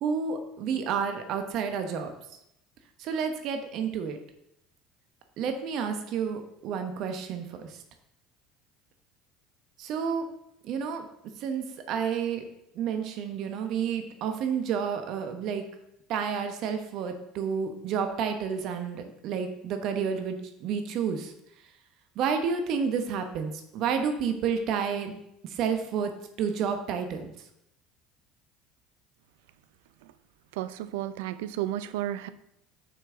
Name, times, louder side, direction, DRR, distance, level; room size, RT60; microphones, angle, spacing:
voice 1, 0.0-2.1 3.0-4.2 5.4-7.6 9.8-10.3 10.6-11.0 11.4-12.4 12.8-15.6 16.1-21.3 22.2-25.2 25.5-26.1 26.4-27.3, right 6 dB, 60° right, 6 dB, 1.0 m, -30 dB
voice 2, 30.5-32.3, right 13 dB, 75° right, 13 dB, 0.4 m, -33 dB
6.7 x 5.5 x 3.8 m, 0.81 s
hypercardioid pair, 75°, 0 cm